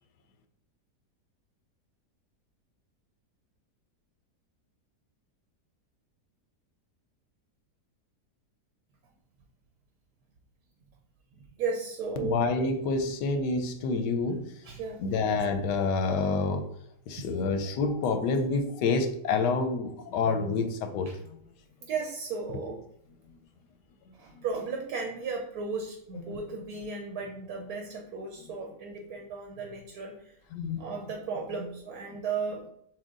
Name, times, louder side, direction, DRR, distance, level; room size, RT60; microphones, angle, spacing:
voice 1, 11.3-12.4 14.6-15.0 17.2-17.3 21.1-21.2 21.8-22.8 24.1-30.4 30.8-32.6, right 4 dB, 75° right, 2 dB, 1.2 m, -35 dB
voice 2, 12.2-14.4 15.0-16.6 17.1-21.1 24.3-24.4 30.5-30.9, left 4 dB, 90° left, 7 dB, 1.2 m, -28 dB
6.2 x 2.2 x 3.6 m, 0.71 s
omnidirectional pair, 1.8 m